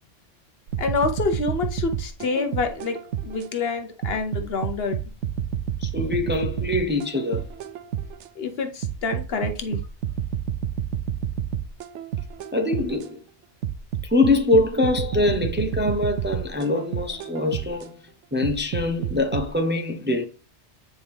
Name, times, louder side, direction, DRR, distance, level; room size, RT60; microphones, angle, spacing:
sound 1, 0.7-3.5 4.0-8.3 8.8-13.1 13.6-17.9 18.4-19.5, right 9 dB, 85° right, 0.9 m, -30 dB
voice 1, 0.8-5.0 8.3-9.8, left 4 dB, 60° left, 1.1 m, -27 dB
voice 2, 5.8-7.5 12.5-13.2 14.0-18.0 18.3-20.3, left 2 dB, 10° right, 0.6 m, -23 dB
8.6 x 4.6 x 3.5 m
omnidirectional pair, 1.2 m